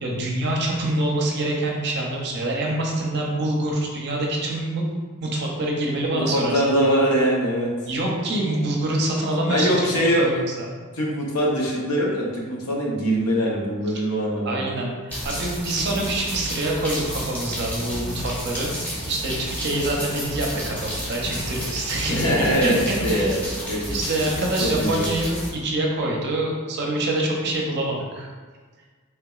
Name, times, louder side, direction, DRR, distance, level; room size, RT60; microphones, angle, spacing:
voice 1, 0.0-4.9 5.2-6.7 7.9-9.9 10.2-10.7 14.5-18.8 19.0-23.5 23.9-28.3, right 1 dB, 50° right, -1 dB, 0.6 m, -26 dB
voice 2, 6.1-7.7 9.5-10.3 10.9-14.7 22.1-23.4 23.7-25.1, equal, 80° left, -3 dB, 0.7 m, -23 dB
sound 1, 15.1-25.5, equal, 10° left, 0.7 m, -31 dB
3.4 x 2.8 x 2.3 m, 1.5 s
head